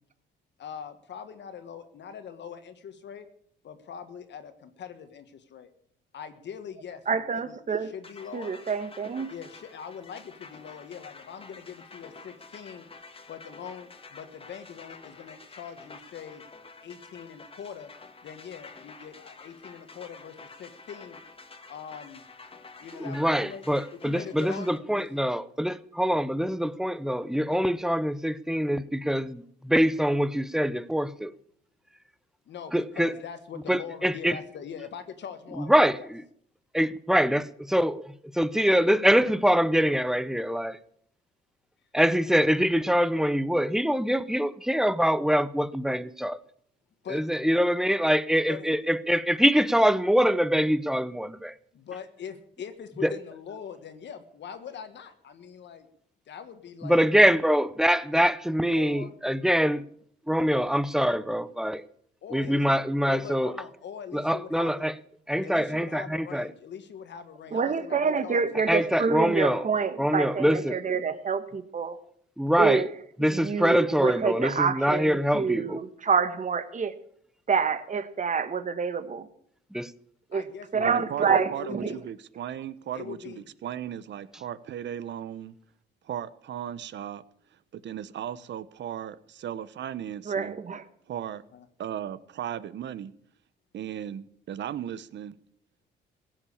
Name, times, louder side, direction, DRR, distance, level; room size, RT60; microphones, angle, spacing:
voice 1, 0.6-3.3 3.6-5.7 6.1-8.5 9.3-12.9 13.3-16.4 16.8-17.9 18.2-21.2 21.7-22.2 22.8-23.7 24.0-25.1 32.4-36.1 42.2-42.3 47.0-47.2 48.5-48.7 51.7-55.9 56.3-57.0 58.7-59.1 62.2-62.7 63.0-64.9 65.4-68.9 80.3-82.0 82.9-83.5 91.5-91.7, left 7 dB, 65° left, 1.5 m, -42 dB
voice 2, 7.1-7.9 8.3-9.3 67.5-72.0 72.6-72.9 73.3-76.9 77.5-79.3 80.3-80.4 80.7-81.9 90.2-90.8, right 6 dB, 40° right, 1.4 m, -27 dB
sound 1, 8.0-24.8, left 4 dB, 30° left, 1.6 m, -49 dB
voice 3, 23.0-31.3 32.7-33.1 33.7-34.4 35.7-36.2 36.7-40.8 41.9-46.4 47.1-51.5 53.0-53.1 56.8-59.8 60.3-61.8 62.3-63.5 64.1-64.9 65.3-66.5 68.7-69.6 70.0-70.8 72.4-72.8 73.2-75.8 79.7-79.9, equal, ahead, 0.7 m, -24 dB
voice 4, 80.7-85.5 86.0-87.2 87.5-90.6 91.1-91.4 91.8-93.1 93.7-95.4, right 10 dB, 65° right, 0.9 m, -36 dB
16.0 x 7.5 x 8.5 m
cardioid pair, 90°, 20 cm